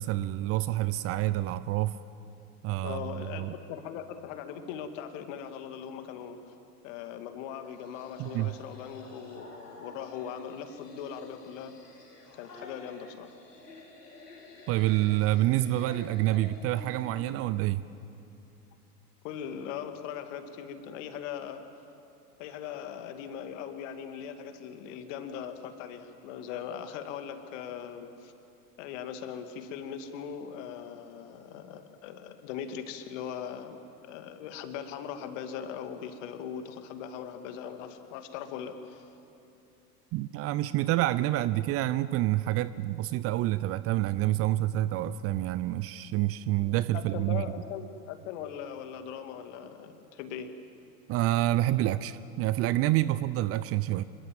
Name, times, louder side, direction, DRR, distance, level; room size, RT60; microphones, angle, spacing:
voice 1, 0.0-2.0 2.6-3.6 8.2-8.5 14.7-17.8 40.1-47.4 51.1-54.0, right 15 dB, 30° right, 16 dB, 0.6 m, -28 dB
voice 2, 2.8-6.4 6.8-11.7 12.4-13.4 19.2-21.6 22.4-28.3 28.8-39.1 46.6-50.5, left 8 dB, 50° left, 7 dB, 2.4 m, -40 dB
sound 1, 7.5-17.5, left 2 dB, 85° left, 4.3 m, -50 dB
26.5 x 23.0 x 7.6 m, 2.8 s
figure-of-eight pair, 85°, 46 cm